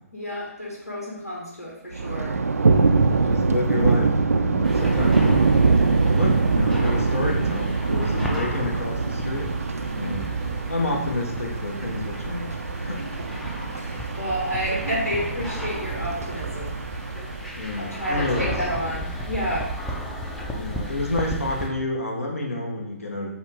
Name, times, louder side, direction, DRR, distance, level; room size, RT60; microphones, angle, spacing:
voice 1, 0.1-2.4 9.8-10.7 13.0-17.1 17.8-19.7, equal, 80° left, -5 dB, 1.6 m, -31 dB
Thunder, 1.9-17.9, right 4 dB, 70° right, 0.4 m, -23 dB
voice 2, 3.2-5.4 6.1-9.5 10.0-10.3 10.7-12.5 12.8-13.0 17.6-18.5 20.5-23.3, left 2 dB, 65° left, 0 dB, 1.2 m, -29 dB
sound 1, 4.6-21.7, equal, 5° left, 0.5 m, -34 dB
6.2 x 2.4 x 3.5 m, 0.91 s
figure-of-eight pair, 135°, 8 cm